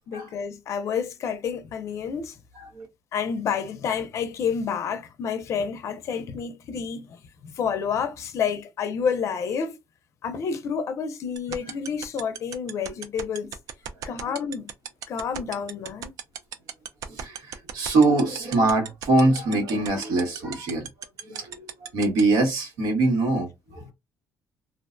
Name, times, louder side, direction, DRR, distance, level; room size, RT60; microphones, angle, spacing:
voice 1, 0.1-2.4 3.1-9.8 10.2-13.6 14.0-14.7 15.1-16.1, left 6 dB, 55° left, 0.4 m, -29 dB
voice 2, 2.6-2.9 14.0-14.3 17.1-20.9 21.2-23.9, right 2 dB, 90° right, 1.3 m, -24 dB
sound 1, 11.4-22.2, right 9 dB, 70° right, 0.4 m, -34 dB
2.4 x 2.1 x 2.5 m
cardioid pair, 130°, 6 cm